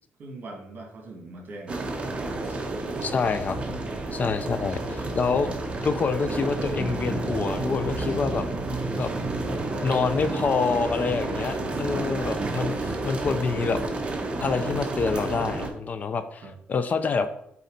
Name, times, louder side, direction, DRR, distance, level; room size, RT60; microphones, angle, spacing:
voice 1, 0.2-1.9 3.7-3.9 4.2-4.3 9.3-10.1 16.4-16.5, right 2 dB, 50° right, 1 dB, 2.1 m, -42 dB
sound 1, 1.7-15.7, right 2 dB, 25° right, 1.1 m, -30 dB
voice 2, 3.0-3.6 4.1-5.5 5.8-8.5 9.0-9.1 9.8-13.8 14.4-16.4 16.7-17.3, left 5 dB, 40° left, 11 dB, 0.5 m, -26 dB
8.4 x 4.1 x 4.0 m, 0.75 s
cardioid pair, 125°, 4 cm